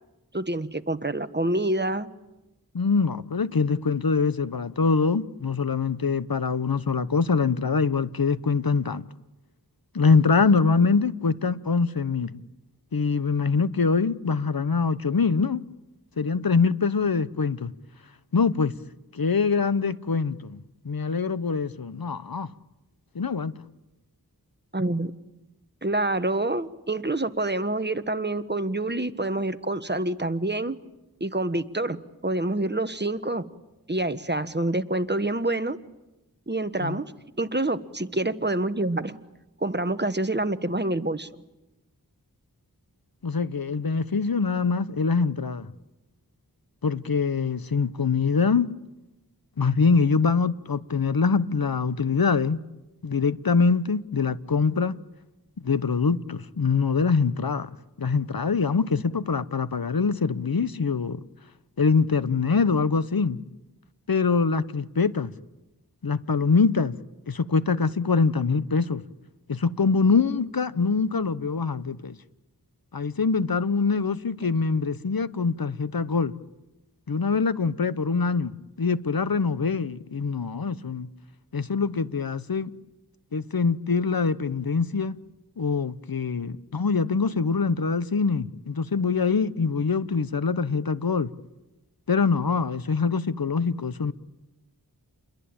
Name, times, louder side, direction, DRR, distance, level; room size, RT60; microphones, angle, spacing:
voice 1, 0.3-2.1 24.7-25.1 25.8-30.7 31.2-33.5 33.9-35.8 36.5-37.1 37.4-39.2 39.6-41.3, right 2 dB, 30° right, 1.3 m, -27 dB
voice 2, 2.7-9.1 9.9-12.4 12.9-15.6 16.2-17.7 18.3-18.7 19.1-20.6 20.8-22.5 23.1-23.5 36.8-37.0 43.2-45.7 46.8-48.7 49.6-52.6 53.0-55.0 55.6-57.7 58.0-61.2 61.8-63.4 64.1-65.3 66.0-66.9 67.3-69.0 69.5-72.1 72.9-76.3 77.1-81.1 81.5-82.7 83.3-85.2 85.6-91.3 92.1-94.1, left 5 dB, 65° left, 1.0 m, -24 dB
29.0 x 22.5 x 8.8 m
wide cardioid pair, 45°, 37 cm